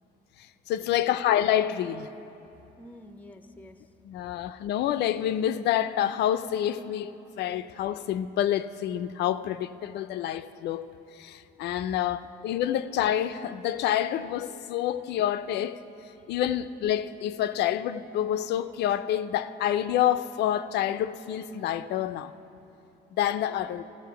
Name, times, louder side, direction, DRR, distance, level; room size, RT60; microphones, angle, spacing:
voice 1, 0.7-2.1 4.1-10.9 11.2-15.8 16.3-22.3 23.2-23.8, left 11 dB, 75° left, 0.4 m, -28 dB
voice 2, 2.8-3.9 23.5-23.7, left 1 dB, 10° left, 0.5 m, -49 dB
14.0 x 7.6 x 5.7 m
cardioid pair, 120°, 17 cm